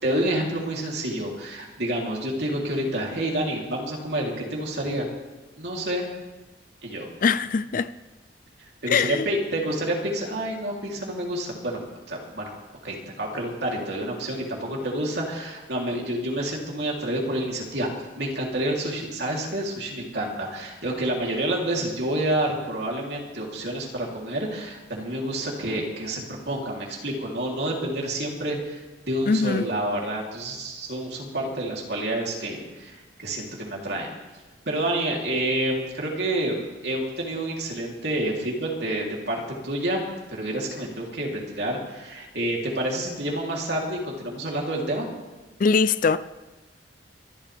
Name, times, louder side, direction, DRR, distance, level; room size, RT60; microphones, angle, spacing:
voice 1, 0.0-5.1 5.6-6.1 6.8-7.1 8.8-11.8 12.1-12.5 12.8-17.9 18.2-28.8 29.1-34.1 34.7-45.1, right 1 dB, 65° right, 3.3 m, -28 dB
voice 2, 7.2-7.9 8.9-9.3 29.3-29.6 45.6-46.2, left 5 dB, 50° left, 0.4 m, -21 dB
25.5 x 12.0 x 3.5 m
head